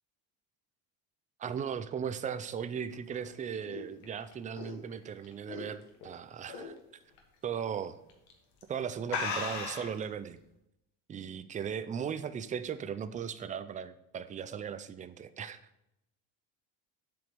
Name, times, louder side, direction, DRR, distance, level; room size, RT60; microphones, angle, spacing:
voice 1, 1.4-6.8 7.4-8.0 8.7-10.4 11.1-15.6, right 7 dB, 20° right, 12 dB, 0.3 m, -37 dB
sound 1, 2.9-6.1 6.5-6.8 7.2-7.3 8.1-8.3 8.6-8.7 9.1-10.0, left 5 dB, 90° left, 1.7 m, -37 dB
7.7 x 5.1 x 5.2 m, 0.83 s
cardioid pair, 130°, 42 cm